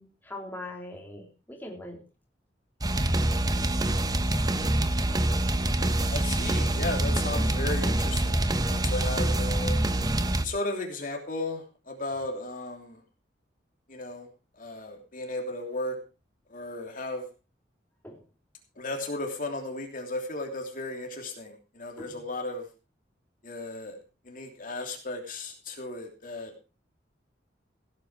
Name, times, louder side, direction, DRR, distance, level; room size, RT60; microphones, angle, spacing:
voice 1, 0.0-2.0 18.0-18.2 22.0-22.2, left 1 dB, 10° left, 0 dB, 3.7 m, -41 dB
sound 1, 2.8-10.5, right 1 dB, 20° right, 0.9 m, -25 dB
voice 2, 5.8-9.8 10.4-13.0 13.9-14.3 14.6-16.0 16.5-17.2 18.8-22.7 23.4-24.0 24.2-26.5, left 2 dB, 50° left, 2 dB, 3.1 m, -35 dB
17.0 x 9.7 x 4.9 m, 0.33 s
head